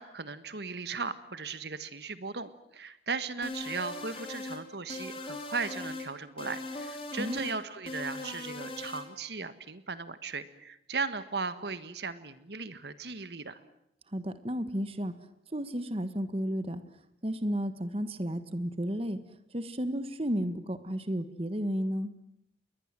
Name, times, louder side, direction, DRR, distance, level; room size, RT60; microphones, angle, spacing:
voice 1, 0.0-13.6, right 4 dB, 70° right, 12 dB, 1.5 m, -37 dB
sound 1, 3.4-4.6 4.9-6.1 6.4-7.6 7.9-9.1, left 2 dB, 30° left, 3.7 m, -39 dB
voice 2, 7.2-7.5 14.1-15.1 15.5-16.8 17.2-19.2 19.5-22.1, equal, 30° right, 11 dB, 1.5 m, -32 dB
29.0 x 22.0 x 7.6 m, 0.75 s
head